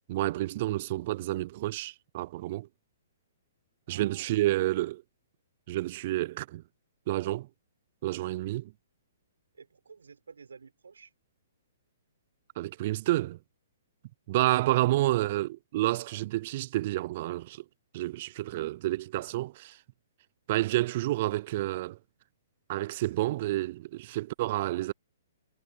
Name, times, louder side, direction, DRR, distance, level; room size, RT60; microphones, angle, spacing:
voice 1, 0.1-2.7 3.9-5.0 5.7-6.6 7.1-7.5 8.0-8.7 12.6-13.4 14.3-17.6 17.9-19.8 20.5-22.0 22.7-24.9, right 16 dB, 45° right, 0.4 m, -29 dB
voice 2, 3.9-4.8 9.5-11.1 14.9-15.1, right 5 dB, 85° right, 6.6 m, -51 dB
hypercardioid pair, 130°, 0 cm